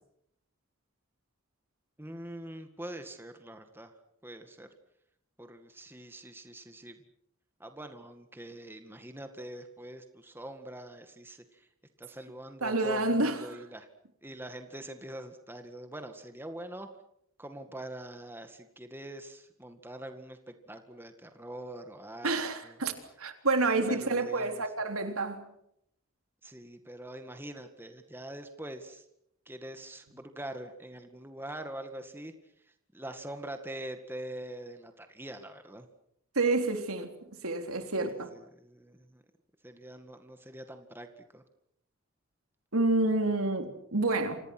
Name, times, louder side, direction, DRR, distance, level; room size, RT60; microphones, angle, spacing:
voice 1, 2.0-3.9 4.2-4.7 5.4-7.0 7.6-11.7 12.0-13.9 14.2-16.9 17.4-22.8 23.8-24.6 26.4-29.0 29.5-32.3 32.9-35.9 38.1-39.2 39.6-41.4, right 1 dB, 10° right, 2.0 m, -44 dB
voice 2, 12.6-13.4 22.2-22.9 23.2-25.5 36.4-37.1 37.4-38.3 42.7-44.4, right 2 dB, 90° right, 3.7 m, -28 dB
29.5 x 26.0 x 6.2 m
head